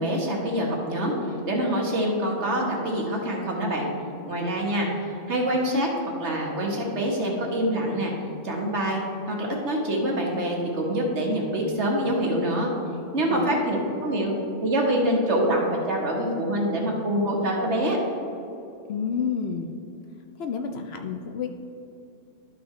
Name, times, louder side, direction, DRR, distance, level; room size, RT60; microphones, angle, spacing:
voice 1, 0.0-3.9 4.3-4.9 5.3-5.9 6.2-8.1 8.4-9.0 9.3-12.7 13.1-14.3 14.6-18.0, right 1 dB, 65° right, -1 dB, 1.6 m, -25 dB
voice 2, 13.3-13.7 18.9-19.7 20.4-21.5, left 6 dB, 65° left, 4 dB, 0.7 m, -30 dB
12.5 x 5.6 x 3.2 m, 2.8 s
omnidirectional pair, 1.3 m